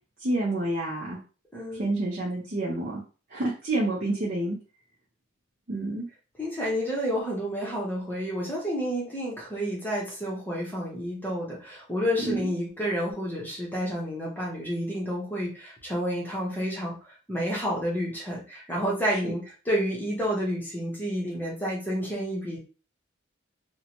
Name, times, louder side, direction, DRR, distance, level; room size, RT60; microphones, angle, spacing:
voice 1, 0.2-1.2 1.7-3.0 3.3-4.6 5.7-6.1 12.2-12.5 19.1-19.3, right 2 dB, 45° right, -4 dB, 0.6 m, -28 dB
voice 2, 1.5-1.8 6.4-22.6, equal, 10° left, -4 dB, 0.8 m, -30 dB
2.7 x 2.2 x 2.9 m, 0.36 s
head